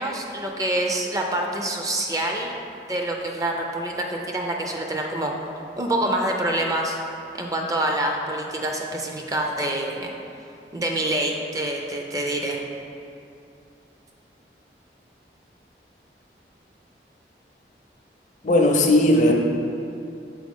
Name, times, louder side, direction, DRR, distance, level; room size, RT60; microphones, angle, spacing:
voice 1, 0.0-2.5 2.9-5.3 5.8-7.0 7.4-10.1 10.7-12.6, right 1 dB, 20° right, 1 dB, 0.4 m, -26 dB
voice 2, 18.4-19.3, left 1 dB, 40° left, 2 dB, 0.5 m, -17 dB
6.1 x 4.4 x 3.6 m, 2.7 s
head